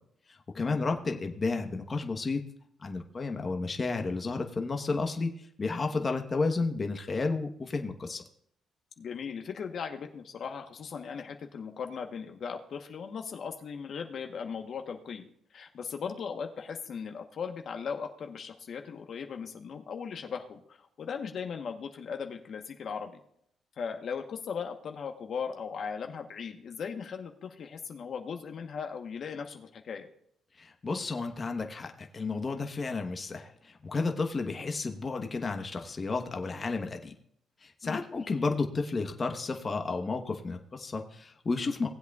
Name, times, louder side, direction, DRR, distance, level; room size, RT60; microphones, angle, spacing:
voice 1, 0.3-2.4 2.8-5.3 5.6-8.2 30.6-37.1 37.6-41.9, left 3 dB, 35° left, 4 dB, 1.1 m, -32 dB
voice 2, 9.0-15.2 15.5-23.1 23.8-30.1 37.8-38.0, left 6 dB, 60° left, 4 dB, 1.0 m, -38 dB
18.5 x 7.9 x 2.4 m, 0.69 s
cardioid pair, 90°, 0 cm